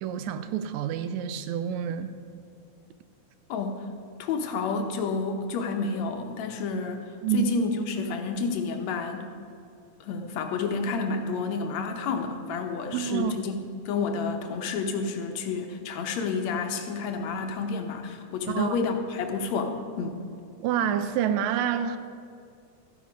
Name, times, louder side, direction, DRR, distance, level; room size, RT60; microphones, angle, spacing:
voice 1, 0.0-2.2 7.2-7.5 12.9-13.3 18.5-18.8 20.6-22.0, right 9 dB, 80° right, 11 dB, 1.8 m, -27 dB
voice 2, 4.2-9.3 10.0-13.6 13.9-20.2, left 4 dB, 70° left, 4 dB, 2.0 m, -30 dB
13.0 x 9.3 x 5.2 m, 2.5 s
omnidirectional pair, 3.4 m